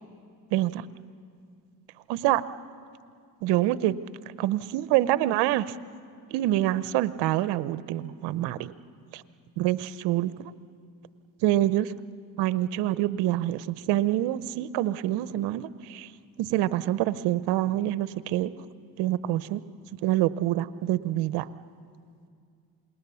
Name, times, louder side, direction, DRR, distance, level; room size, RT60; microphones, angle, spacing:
voice 1, 0.5-0.8 2.1-2.4 3.4-4.0 4.4-5.7 6.3-8.7 9.1-9.2 9.6-10.5 11.4-11.9 12.4-16.1 16.4-18.5 19.0-19.6 20.0-21.5, right 14 dB, 75° right, 15 dB, 0.9 m, -26 dB
27.5 x 20.0 x 7.0 m, 2.2 s
supercardioid pair, 85°, 42 cm